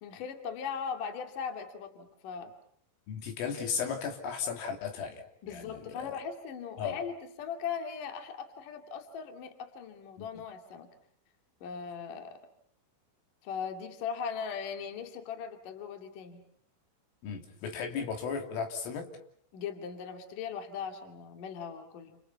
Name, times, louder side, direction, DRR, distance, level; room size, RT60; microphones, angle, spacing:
voice 1, 0.0-2.5 5.4-10.9 11.6-12.4 13.4-16.4 19.5-22.2, left 6 dB, 50° left, 5 dB, 3.4 m, -39 dB
voice 2, 3.1-6.2 6.8-7.0 10.2-10.3 17.2-19.1, left 6 dB, 75° left, 4 dB, 5.5 m, -35 dB
30.0 x 28.5 x 5.9 m, 0.64 s
omnidirectional pair, 5.9 m